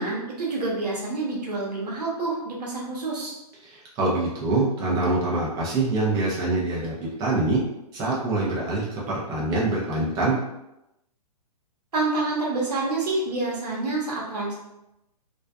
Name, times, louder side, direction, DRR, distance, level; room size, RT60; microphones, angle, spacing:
voice 1, 0.0-3.3 11.9-14.5, right 2 dB, 75° right, -3 dB, 0.9 m, -27 dB
voice 2, 3.6-6.9 7.2-7.6 7.9-10.4, right 2 dB, 20° right, -5 dB, 0.6 m, -25 dB
2.4 x 2.2 x 2.3 m, 0.89 s
hypercardioid pair, 130°, 21 cm